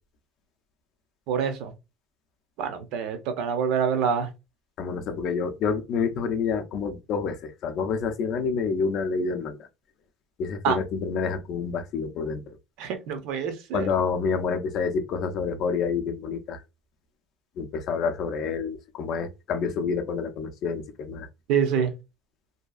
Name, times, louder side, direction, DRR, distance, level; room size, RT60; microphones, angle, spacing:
voice 1, 1.3-1.7 2.6-4.3 10.6-10.8 12.8-13.9 21.5-21.9, right 7 dB, 70° right, 0.6 m, -26 dB
voice 2, 4.8-9.7 10.4-12.4 13.7-16.6 17.6-21.3, left 5 dB, 50° left, 0.4 m, -28 dB
2.7 x 2.4 x 2.3 m
cardioid pair, 160°, 0 cm